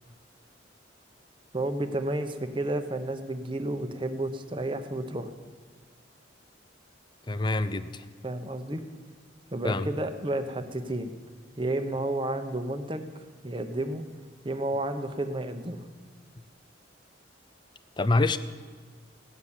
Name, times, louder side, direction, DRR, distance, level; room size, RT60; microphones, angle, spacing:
voice 1, 1.5-5.3 8.2-8.8 9.5-11.1 11.6-13.1 13.4-14.0 14.4-15.8, right 1 dB, 25° right, 8 dB, 0.9 m, -31 dB
voice 2, 7.3-8.0 9.6-9.9 18.0-18.4, left 2 dB, 25° left, 12 dB, 0.5 m, -26 dB
16.5 x 7.2 x 9.8 m, 1.5 s
head